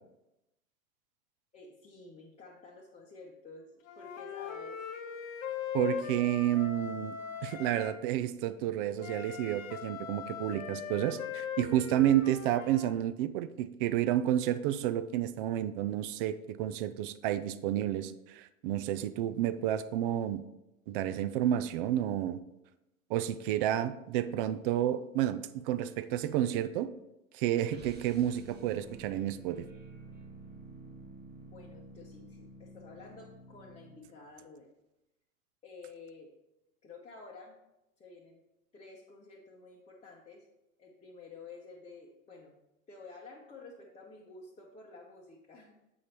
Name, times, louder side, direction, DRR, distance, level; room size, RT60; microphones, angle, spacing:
voice 1, 1.5-3.7 4.0-4.8 31.5-34.7 35.6-36.3 36.8-37.6 38.0-38.4 38.7-40.5 40.8-42.6 42.9-45.8, left 3 dB, 15° left, -4 dB, 0.9 m, -51 dB
Wind instrument woodwind instrument, 3.8-8.0 9.0-12.9, left 8 dB, 70° left, 1.0 m, -40 dB
voice 2, 5.7-7.2 7.4-20.4 20.9-22.4 23.1-26.9 27.3-29.7, right 12 dB, 40° right, 14 dB, 0.5 m, -30 dB
sound 1, 27.7-34.1, right 3 dB, 20° right, 1.2 m, -50 dB
7.0 x 5.0 x 4.4 m, 0.92 s
hypercardioid pair, 105°, 43 cm